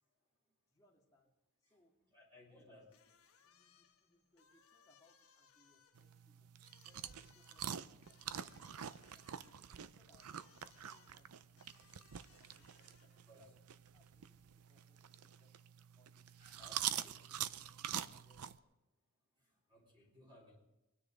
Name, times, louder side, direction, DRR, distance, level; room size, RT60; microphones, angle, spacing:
voice 1, 0.7-1.4 1.7-1.9 2.5-6.5 6.8-14.4 14.7-15.6 15.9-16.3 16.6-17.9 18.1-18.6, left 1 dB, 15° left, -2 dB, 2.2 m, -73 dB
voice 2, 2.1-2.8 13.3-13.4 16.4-17.1 19.7-20.6, left 1 dB, 20° right, -4 dB, 3.8 m, -61 dB
sound 1, 2.9-13.4, left 8 dB, 70° left, 1.4 m, -70 dB
sound 2, 5.9-18.6, right 10 dB, 80° right, 0.6 m, -46 dB
24.0 x 9.9 x 5.1 m, 1.0 s
head